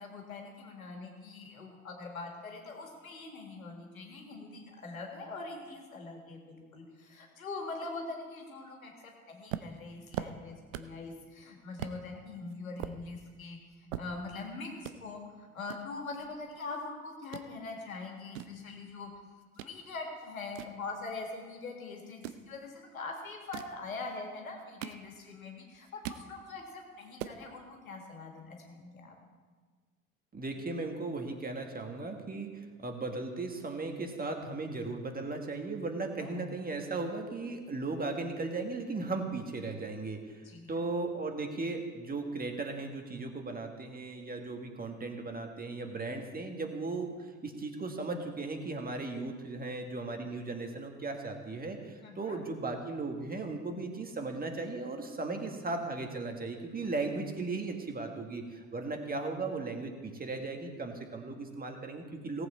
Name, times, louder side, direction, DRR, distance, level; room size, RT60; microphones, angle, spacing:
voice 1, 0.0-19.1 19.6-29.2 36.2-36.3 40.4-40.9 52.0-52.4, left 3 dB, 80° left, 2 dB, 2.0 m, -43 dB
sound 1, 9.5-11.1 11.4-11.5 11.8-12.0 12.5-14.5 14.8-15.0 15.7-16.9 17.1-17.5 18.1-19.8 20.2-21.5 22.1-22.5 23.3-23.8 24.4-25.4 25.7-26.3 26.7-26.8 27.0-27.4, right 11 dB, 70° right, 0.7 m, -42 dB
voice 2, 30.3-62.5, right 3 dB, 20° right, 4 dB, 1.9 m, -37 dB
18.0 x 7.9 x 4.3 m, 1.5 s
figure-of-eight pair, 60°, 41 cm